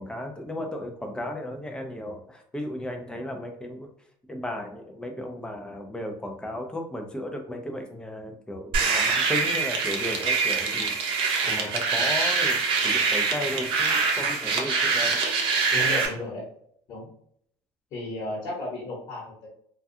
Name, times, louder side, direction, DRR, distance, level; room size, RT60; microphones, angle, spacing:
voice 1, 0.0-3.9 4.3-11.0 11.5-15.2, left 1 dB, 10° left, 3 dB, 0.5 m, -35 dB
sound 1, 8.7-16.1, right 4 dB, 55° right, 0.6 m, -24 dB
voice 2, 11.4-11.8 15.7-16.4 16.9-17.1 17.9-19.5, left 2 dB, 50° left, -7 dB, 1.1 m, -34 dB
2.3 x 2.2 x 2.7 m, 0.66 s
supercardioid pair, 110°, 10 cm